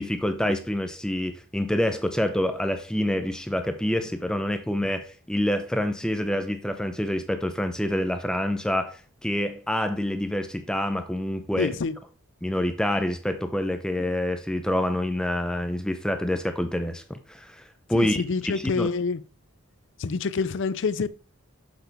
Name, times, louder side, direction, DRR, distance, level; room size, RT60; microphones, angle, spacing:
voice 1, 0.0-11.8 12.4-18.9, left 1 dB, 5° left, 0.5 m, -27 dB
voice 2, 11.6-12.0 17.9-19.2 20.0-21.1, left 4 dB, 60° left, 0.4 m, -27 dB
7.6 x 6.9 x 3.4 m
head